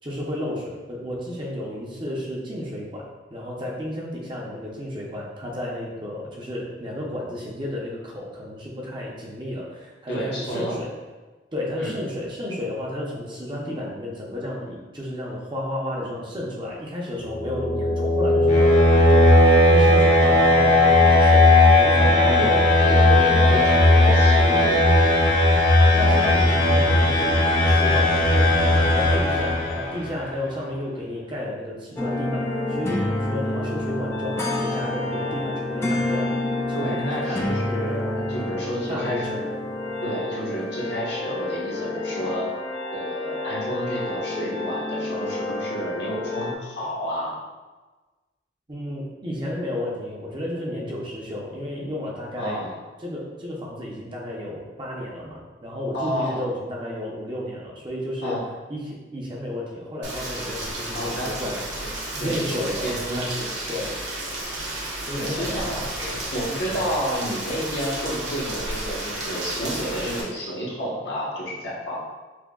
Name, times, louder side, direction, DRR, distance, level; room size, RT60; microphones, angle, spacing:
voice 1, 0.0-3.1 3.3-10.9 11.5-22.7 23.4-23.8 26.0-36.3 36.8-37.5 38.9-39.4 48.7-52.6 53.0-58.4 58.7-61.6 62.1-63.3 63.7-63.9 65.1-66.3 66.6-66.9, left 1 dB, 25° right, -3 dB, 0.6 m, -32 dB
voice 2, 10.1-10.8 11.8-11.9 22.1-22.5 22.8-24.8 36.7-39.5 40.0-42.5 42.9-47.4 52.4-52.7 55.9-56.5 58.2-58.5 60.9-61.6 62.2-63.9 65.2-65.9 66.3-72.0, equal, 65° left, -6 dB, 1.0 m, -30 dB
sound 1, 17.3-30.1, left 1 dB, 40° left, 0.7 m, -17 dB
sound 2, 32.0-46.6, left 2 dB, 15° left, 0.3 m, -28 dB
Rain, 60.0-70.2, right 1 dB, 75° right, 0.8 m, -32 dB
5.9 x 2.2 x 2.3 m, 1.2 s
head